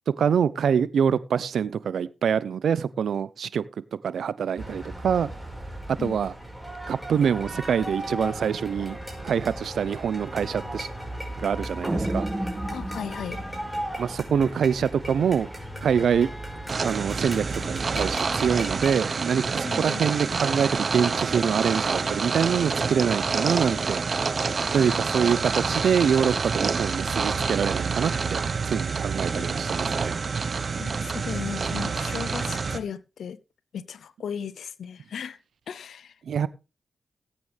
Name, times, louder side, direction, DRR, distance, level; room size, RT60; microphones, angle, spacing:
voice 1, 0.2-3.6 4.0-5.3 6.0-6.3 6.9-10.9 11.4-12.3 14.0-15.5 15.8-16.3 16.8-24.0 24.7-28.4 28.7-30.2 36.3-36.5, right 7 dB, 80° right, 0.7 m, -25 dB
sound 1, 4.6-18.9, right 1 dB, ahead, 4.9 m, -36 dB
sound 2, 11.8-14.3, right 1 dB, 20° right, 1.9 m, -32 dB
voice 2, 12.7-13.4 19.6-20.1 29.3-29.5 30.8-33.4 33.7-35.4 35.7-36.1, left 7 dB, 80° left, 0.7 m, -36 dB
sound 3, 16.7-32.8, right 4 dB, 55° right, 1.0 m, -27 dB
17.5 x 8.9 x 3.4 m
supercardioid pair, 45°, 0 cm